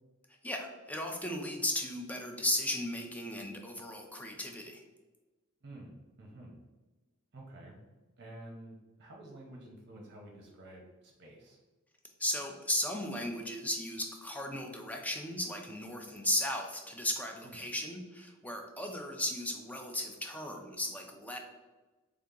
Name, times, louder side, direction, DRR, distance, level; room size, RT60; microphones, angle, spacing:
voice 1, 0.4-4.8 12.2-21.4, left 1 dB, 5° left, 2 dB, 0.5 m, -36 dB
voice 2, 5.6-6.6 7.3-7.8 8.2-11.6 17.4-17.6, right 1 dB, 55° right, -1 dB, 0.7 m, -50 dB
3.5 x 2.8 x 3.7 m, 1.2 s
head